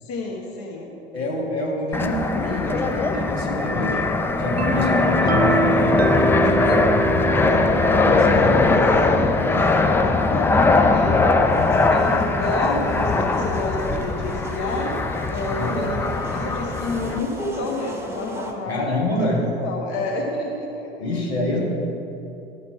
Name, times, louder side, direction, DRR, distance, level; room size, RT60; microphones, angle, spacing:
voice 1, 0.0-1.4 4.6-5.0 7.3-11.2 11.7-14.9 15.3-21.2, left 2 dB, 45° left, -1 dB, 1.2 m, -30 dB
voice 2, 1.1-4.0 4.4-4.9 5.2-6.7 7.4-7.5 8.0-8.8 13.3-13.5 15.6-15.9 18.7-19.5 21.0-21.6, left 1 dB, 80° left, -3 dB, 1.8 m, -27 dB
Fixed-wing aircraft airplane, 1.9-17.2, left 3 dB, 5° left, 0.3 m, -20 dB
sound 1, 4.6-12.2, right 4 dB, 85° right, 0.6 m, -28 dB
sound 2, 11.4-18.5, right 1 dB, 10° right, 1.0 m, -36 dB
12.5 x 5.6 x 4.6 m, 2.8 s
figure-of-eight pair, 75°, 31 cm